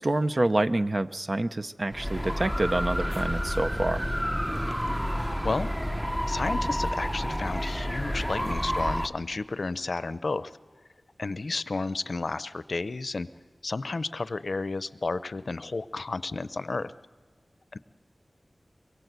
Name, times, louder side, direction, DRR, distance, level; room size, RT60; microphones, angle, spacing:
voice 1, 0.0-4.1, right 2 dB, 45° right, 10 dB, 0.7 m, -27 dB
sound 1, 1.9-9.1, equal, 10° right, 0.9 m, -29 dB
sound 2, 2.7-9.0, equal, 90° right, 7.8 m, -50 dB
voice 2, 6.3-10.5 11.2-13.3 13.6-16.9 17.7-17.8, left 3 dB, 70° left, 14 dB, 0.6 m, -32 dB
24.5 x 22.0 x 8.1 m, 1.5 s
wide cardioid pair, 75°, 0 cm